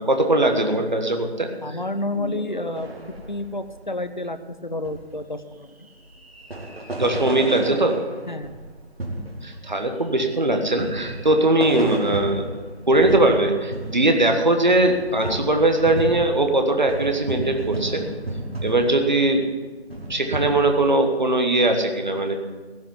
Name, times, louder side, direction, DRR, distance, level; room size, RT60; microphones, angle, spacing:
voice 1, 0.0-1.8 2.1-2.7 7.0-8.0 9.4-12.5 12.9-18.0 18.6-19.4 20.1-22.3, right 2 dB, 45° right, 4 dB, 1.4 m, -20 dB
voice 2, 1.6-2.9 3.3-5.7 8.3-8.6 15.2-15.4, left 1 dB, 45° left, 10 dB, 0.8 m, -30 dB
sound 1, 2.7-4.2 4.5-4.6 4.8-5.1 5.8-19.5 19.8-20.9, right 1 dB, 60° right, 2.3 m, -33 dB
15.5 x 5.7 x 9.7 m, 1.4 s
figure-of-eight pair, 170°, 33 cm